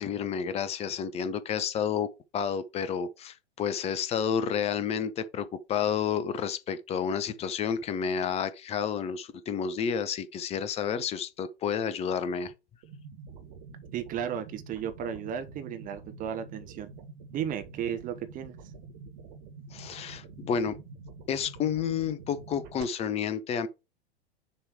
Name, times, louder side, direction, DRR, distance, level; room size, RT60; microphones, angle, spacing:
voice 1, 0.0-2.1 2.3-12.5 19.7-20.7 21.3-23.7, left 7 dB, 20° left, 0.6 m, -30 dB
sound 1, 12.8-22.8, right 4 dB, 45° right, 1.6 m, -47 dB
voice 2, 13.9-16.9 17.3-18.6, right 9 dB, 25° right, 0.9 m, -34 dB
6.7 x 3.1 x 4.7 m
figure-of-eight pair, 100°, 33 cm